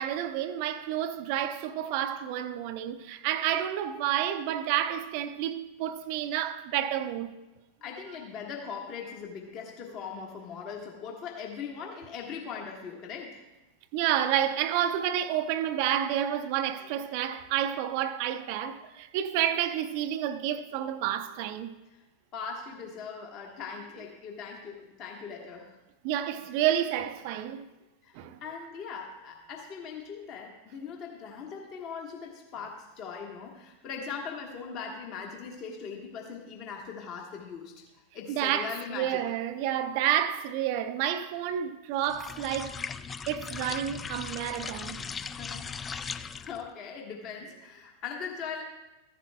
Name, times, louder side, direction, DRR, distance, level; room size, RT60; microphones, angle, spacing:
voice 1, 0.0-7.3 13.9-21.7 26.0-27.7 28.1-28.4 38.3-42.8 43.3-45.2, right 11 dB, 45° right, 0.5 m, -30 dB
voice 2, 7.8-13.4 21.9-22.0 22.3-25.8 28.0-37.8 38.1-39.2 45.4-48.6, left 6 dB, 40° left, 1.4 m, -40 dB
sound 1, 42.0-46.7, left 6 dB, 20° left, 0.3 m, -38 dB
14.5 x 11.0 x 2.2 m
figure-of-eight pair, 90°, 0 cm